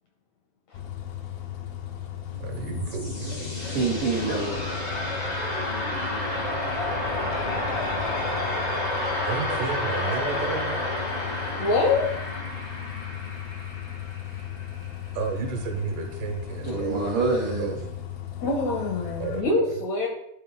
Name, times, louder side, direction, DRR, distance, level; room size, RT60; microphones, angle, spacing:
Bus, 0.7-19.4, left 11 dB, 90° left, 2.7 m, -36 dB
sound 1, 2.3-15.2, left 1 dB, 55° left, 0.7 m, -30 dB
voice 1, 2.3-3.5 9.3-10.8 15.1-17.2 17.5-17.9 19.2-19.8, right 6 dB, 70° right, 4 dB, 2.4 m, -32 dB
voice 2, 3.7-4.7 16.6-17.7, right 3 dB, 90° right, -2 dB, 1.2 m, -26 dB
voice 3, 11.6-12.1 18.4-20.1, left 3 dB, 75° left, 1 dB, 1.7 m, -24 dB
11.5 x 4.0 x 3.8 m, 0.77 s
omnidirectional pair, 4.2 m